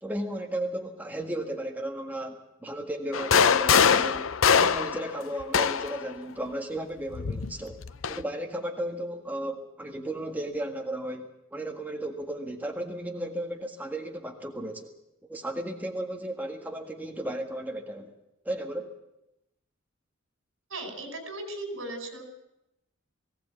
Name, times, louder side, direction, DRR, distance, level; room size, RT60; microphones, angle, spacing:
voice 1, 0.0-7.8 8.1-14.9 15.3-18.1 18.4-18.9, right 1 dB, 10° right, 2 dB, 1.7 m, -34 dB
sound 1, 3.1-6.0 7.1-8.2, left 7 dB, 80° left, 0.7 m, -23 dB
voice 2, 20.7-22.2, right 2 dB, 85° right, 5 dB, 5.1 m, -37 dB
19.0 x 17.0 x 8.2 m, 0.89 s
head